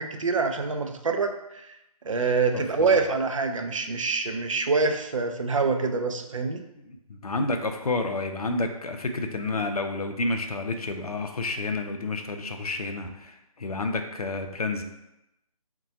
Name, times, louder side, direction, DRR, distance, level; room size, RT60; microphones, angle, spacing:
voice 1, 0.0-1.7 2.0-6.6, right 4 dB, 55° right, 6 dB, 0.4 m, -26 dB
voice 2, 2.5-3.0 6.9-14.8, left 2 dB, 75° left, 6 dB, 0.5 m, -30 dB
3.9 x 2.2 x 2.7 m, 0.88 s
figure-of-eight pair, 150°, 19 cm